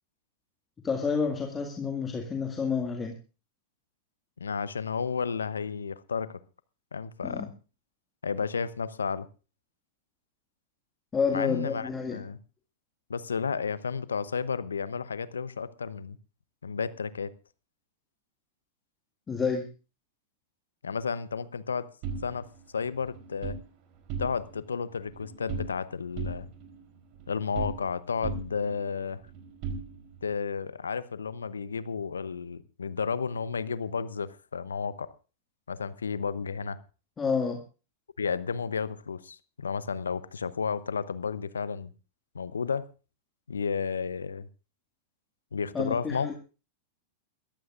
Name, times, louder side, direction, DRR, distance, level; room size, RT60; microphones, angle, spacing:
voice 1, 0.8-3.1 7.2-7.5 11.1-12.2 19.3-19.7 37.2-37.6 45.7-46.3, left 5 dB, 20° left, 2 dB, 2.0 m, -29 dB
voice 2, 4.4-6.4 6.9-7.5 8.2-9.3 11.3-12.4 13.1-16.2 16.6-17.3 20.8-21.9 22.2-22.5 22.7-23.6 24.2-26.5 27.3-29.2 30.2-35.1 35.7-36.8 38.2-41.9 42.3-42.8 43.5-44.5 45.5-46.3, left 5 dB, 85° left, 17 dB, 0.7 m, -32 dB
sound 1, 22.0-23.6 24.0-24.7 24.9-25.8 26.2-28.0 28.2-30.3, right 5 dB, 50° right, 3.7 m, -38 dB
22.0 x 14.5 x 2.5 m, 0.33 s
hypercardioid pair, 100°, 0 cm